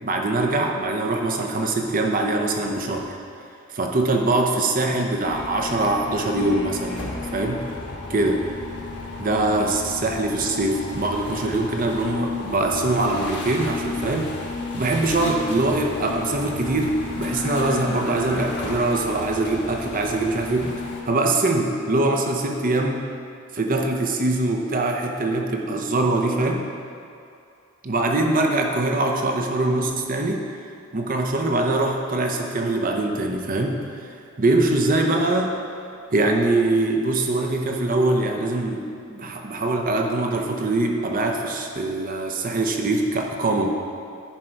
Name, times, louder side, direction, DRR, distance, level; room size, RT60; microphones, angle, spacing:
voice 1, 0.0-3.2 3.7-7.7 8.1-8.4 9.2-14.3 14.7-20.7 21.1-23.1 23.5-26.6 27.8-30.4 30.9-34.1 34.4-35.6 36.1-43.7, right 2 dB, 40° right, 2 dB, 0.7 m, -23 dB
sound 1, 5.2-21.0, left 3 dB, 55° left, 1.3 m, -33 dB
10.5 x 5.0 x 4.5 m, 2.5 s
head